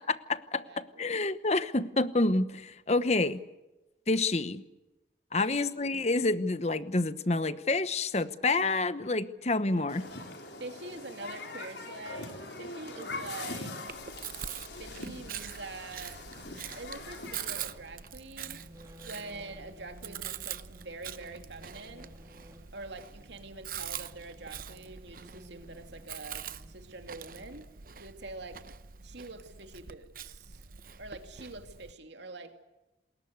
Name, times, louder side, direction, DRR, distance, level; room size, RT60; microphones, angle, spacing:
voice 1, 0.0-3.4 4.1-4.6 5.3-10.0, left 2 dB, 35° left, 13 dB, 1.0 m, -28 dB
voice 2, 0.6-1.2 5.4-5.8 9.7-9.8 10.6-13.7 14.8-16.2 16.7-18.6 19.0-22.1 22.7-27.6 28.0-28.6 29.0-30.6 31.0-32.5, right 3 dB, 70° right, 6 dB, 2.6 m, -45 dB
Human group actions, 9.9-17.6, left 2 dB, 65° left, 4.3 m, -42 dB
Chewing mastication, 13.9-31.9, right 9 dB, 50° right, 0.8 m, -44 dB
sound 1, 14.5-27.6, equal, 20° right, 3.3 m, -57 dB
28.5 x 21.0 x 8.1 m, 1.0 s
head